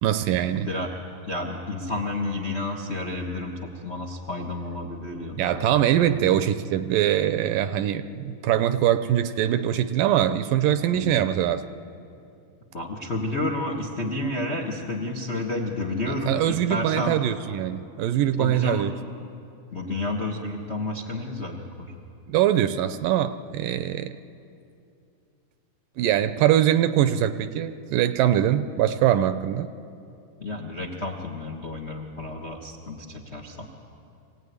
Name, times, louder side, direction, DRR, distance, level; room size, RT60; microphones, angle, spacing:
voice 1, 0.0-0.7 5.4-11.6 16.3-18.9 22.3-24.1 26.0-29.7, right 11 dB, 75° right, 11 dB, 2.1 m, -23 dB
voice 2, 0.5-0.9 1.2-5.7 10.9-11.2 12.7-17.2 18.4-18.9 19.7-21.9 30.4-33.7, left 2 dB, 70° left, 1 dB, 0.6 m, -31 dB
25.0 x 16.5 x 9.5 m, 2.6 s
omnidirectional pair, 4.2 m